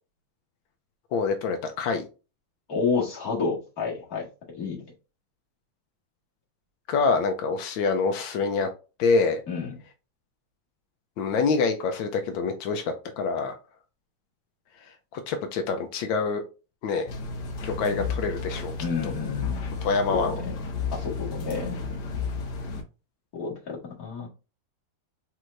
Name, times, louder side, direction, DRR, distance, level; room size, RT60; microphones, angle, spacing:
voice 1, 1.1-2.0 6.9-8.7 9.0-9.4 11.2-13.6 15.1-16.4 16.8-17.1 17.6-18.7 19.8-20.4, left 4 dB, 90° left, 6 dB, 1.4 m, -26 dB
voice 2, 2.7-4.3 4.5-4.9 9.5-9.8 18.8-19.8 20.1-20.3 20.9-21.8 23.3-24.3, left 5 dB, 50° left, -3 dB, 2.3 m, -30 dB
sound 1, 17.1-22.8, left 4 dB, 65° left, 1.5 m, -32 dB
4.6 x 4.3 x 2.5 m, 0.31 s
omnidirectional pair, 2.1 m